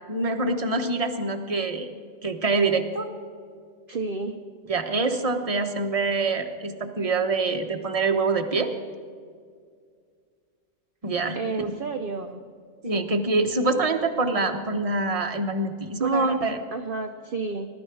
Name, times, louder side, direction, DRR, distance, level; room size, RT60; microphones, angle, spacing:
voice 1, 0.1-1.9 2.2-3.1 4.7-8.7 11.0-11.7 12.8-16.6, right 3 dB, 30° right, 5 dB, 1.1 m, -25 dB
voice 2, 3.9-4.4 11.3-12.4 16.0-16.4 16.7-17.7, right 4 dB, 50° right, 4 dB, 0.9 m, -31 dB
21.5 x 12.5 x 4.8 m, 2.1 s
omnidirectional pair, 1.2 m